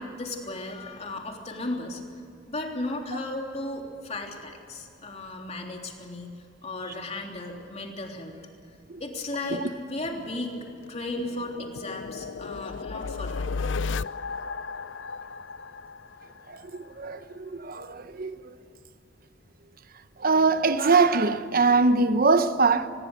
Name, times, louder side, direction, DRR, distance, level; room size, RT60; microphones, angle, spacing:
voice 1, 0.0-2.0 2.5-6.3 6.6-8.3 9.0-13.5, left 2 dB, 35° left, 3.4 m, -35 dB
sound 1, 10.0-16.9, left 4 dB, 85° left, 0.6 m, -35 dB
voice 2, 17.0-18.5 20.2-22.9, right 4 dB, 50° right, 1.0 m, -22 dB
24.5 x 21.0 x 6.7 m
head